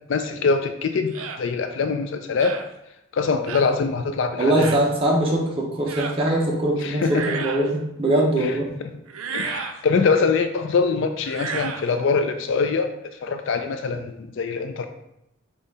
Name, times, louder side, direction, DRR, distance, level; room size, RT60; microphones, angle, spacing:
voice 1, 0.1-1.1 1.4-2.5 3.1-4.7 6.8-7.4 8.4-8.5 8.8-8.9 9.3-14.9, left 4 dB, 60° left, 7 dB, 0.4 m, -23 dB
sound 1, 1.1-1.4 2.4-2.7 3.5-3.7 4.5-4.9 5.9-6.2 7.0-7.7 9.1-9.8 11.2-11.9, right 6 dB, 85° right, 0.4 m, -32 dB
voice 2, 4.4-8.7, right 1 dB, 25° right, -2 dB, 0.7 m, -22 dB
5.4 x 2.4 x 3.9 m, 0.85 s
head